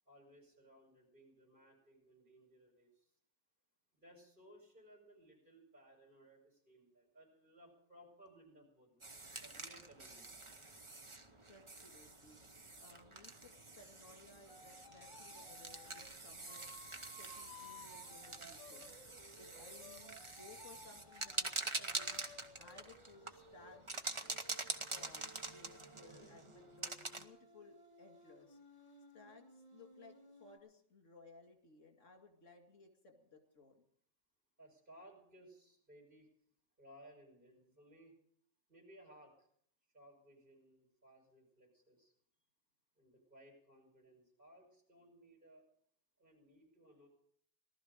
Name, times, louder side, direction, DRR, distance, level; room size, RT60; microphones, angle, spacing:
voice 1, 0.1-3.1 3.9-10.5 34.6-36.3 36.8-38.1 38.7-39.5 39.9-42.1 42.9-45.6 46.2-47.1, right 1 dB, 45° right, 0 dB, 5.8 m, -62 dB
sound 1, 9.0-27.2, right 3 dB, 25° right, 1.0 m, -46 dB
voice 2, 11.5-12.4 12.8-16.7 17.1-19.0 19.4-22.2 22.6-24.4 24.7-28.6 29.1-33.8, left 3 dB, 80° left, 4 dB, 2.7 m, -60 dB
sound 2, 14.5-16.0 16.4-23.8 24.2-30.6, left 1 dB, 20° left, 1.7 m, -59 dB
18.5 x 12.5 x 5.2 m, 0.64 s
omnidirectional pair, 1.3 m